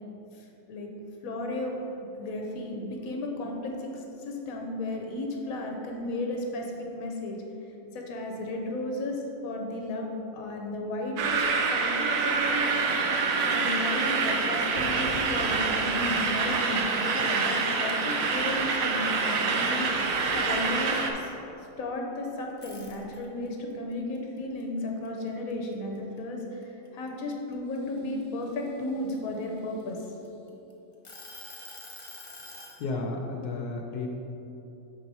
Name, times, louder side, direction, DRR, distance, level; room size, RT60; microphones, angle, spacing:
voice 1, 0.3-0.9 1.2-1.8 2.2-7.4 7.9-11.4 11.7-11.9 13.4-21.3 21.8-30.1, left 1 dB, 70° left, 1 dB, 1.2 m, -34 dB
sound 1, 11.2-21.1, right 4 dB, 70° right, 1.0 m, -26 dB
sound 2, 22.5-23.5 23.9-25.7 26.2-26.4 26.9-28.7 29.4-30.5 31.0-32.8, left 2 dB, 40° left, 0.4 m, -46 dB
voice 2, 32.8-34.1, left 3 dB, 85° left, 1 dB, 1.2 m, -32 dB
6.5 x 4.6 x 4.1 m, 3.0 s
omnidirectional pair, 1.6 m